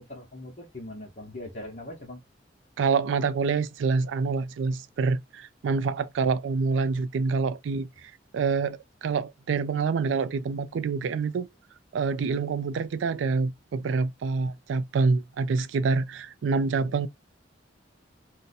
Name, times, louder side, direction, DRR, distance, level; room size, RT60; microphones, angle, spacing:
voice 1, 0.0-2.2, left 1 dB, 40° left, 0.8 m, -41 dB
voice 2, 2.8-7.9 8.3-11.5 11.9-17.1, right 4 dB, 85° right, 0.3 m, -26 dB
2.6 x 2.1 x 3.9 m
head